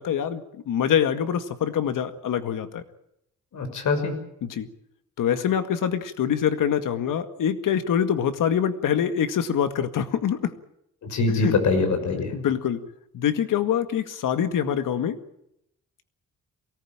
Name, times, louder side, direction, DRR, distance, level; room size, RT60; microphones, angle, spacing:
voice 1, 0.0-2.8 4.4-4.7 5.2-10.5 11.4-11.5 12.3-12.8 13.1-15.2, left 9 dB, 80° left, 9 dB, 2.0 m, -25 dB
voice 2, 3.5-4.1 11.0-12.4, left 3 dB, 60° left, 6 dB, 6.1 m, -23 dB
23.5 x 18.5 x 8.9 m, 0.79 s
wide cardioid pair, 165°, 32 cm